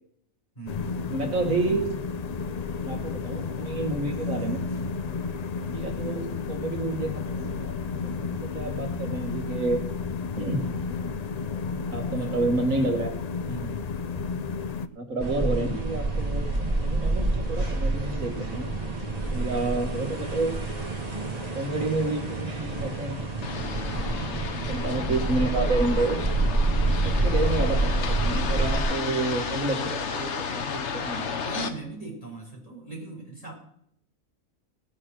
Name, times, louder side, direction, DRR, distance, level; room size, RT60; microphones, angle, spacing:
voice 1, 0.5-1.0 12.1-12.5 13.4-14.1 23.8-24.7 31.4-33.5, right 3 dB, 25° left, -2 dB, 4.1 m, -40 dB
sound 1, 0.7-14.9, left 5 dB, 80° left, 0.3 m, -32 dB
voice 2, 1.1-1.9 2.9-4.6 5.6-7.9 8.2-9.8 10.4-10.6 11.9-13.2 15.0-16.5 16.8-18.8 19.3-20.5 21.5-23.2 24.7-26.2 27.0-31.3, right 2 dB, 70° right, 3 dB, 2.1 m, -29 dB
sound 2, 15.2-28.8, right 2 dB, 30° right, 1.9 m, -27 dB
sound 3, 23.4-31.7, left 6 dB, 55° left, 1.2 m, -32 dB
18.0 x 6.4 x 6.0 m, 0.68 s
omnidirectional pair, 1.5 m